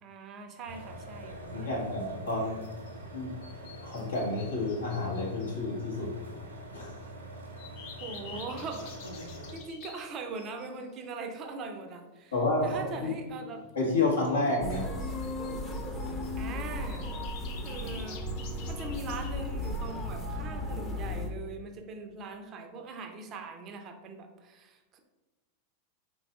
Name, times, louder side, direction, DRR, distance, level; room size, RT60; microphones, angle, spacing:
voice 1, 0.0-1.7 8.0-12.3 12.6-13.6 16.4-17.0 17.6-18.2 18.7-25.0, right 4 dB, 30° right, 5 dB, 0.5 m, -41 dB
sound 1, 0.6-9.6, right 1 dB, 75° right, 0.7 m, -44 dB
voice 2, 1.5-2.6 3.1-3.3 3.8-6.1 6.7-7.0 12.3-13.1 13.7-14.9 15.5-15.6, left 2 dB, 70° left, -2 dB, 1.2 m, -30 dB
sound 2, 2.4-2.9 3.4-5.5 7.6-10.8 14.5-16.4 16.8-20.2, left 6 dB, 45° left, 0.6 m, -49 dB
sound 3, 14.6-21.3, left 1 dB, 15° left, 0.7 m, -35 dB
4.5 x 3.9 x 2.3 m, 1.2 s
figure-of-eight pair, 90°, 0 cm